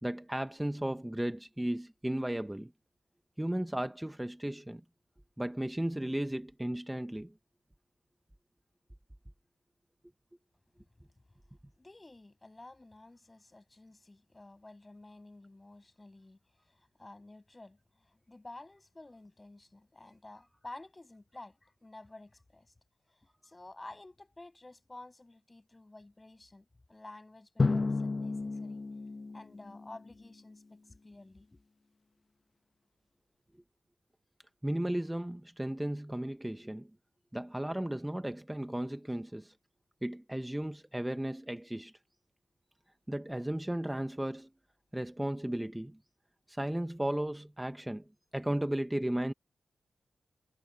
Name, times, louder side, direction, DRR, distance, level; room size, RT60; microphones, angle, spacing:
voice 1, 0.0-2.7 3.4-4.8 5.4-7.3 34.6-36.9 37.3-39.5 40.0-41.9 43.1-44.5 44.9-46.0 46.5-48.0 48.3-49.3, right 1 dB, 10° right, 1.1 m, -35 dB
voice 2, 11.8-16.4 16.6-22.7 23.1-28.8 29.3-31.6, left 2 dB, 30° left, 7.7 m, -52 dB
Drum, 27.6-30.2, left 3 dB, 45° left, 0.9 m, -32 dB
cardioid pair, 45°, 0 cm